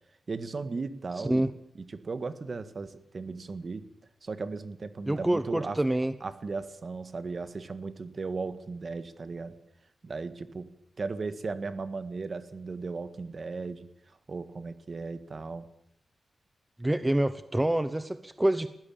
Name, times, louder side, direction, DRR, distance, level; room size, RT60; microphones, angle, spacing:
voice 1, 0.3-1.5 1.7-3.8 4.2-5.8 6.2-9.5 10.0-10.7 11.0-15.7, right 4 dB, 50° right, 12 dB, 1.7 m, -36 dB
voice 2, 5.1-6.1 16.8-18.7, right 1 dB, 15° right, 13 dB, 0.9 m, -26 dB
19.5 x 15.5 x 8.8 m, 0.77 s
wide cardioid pair, 85°, 0 cm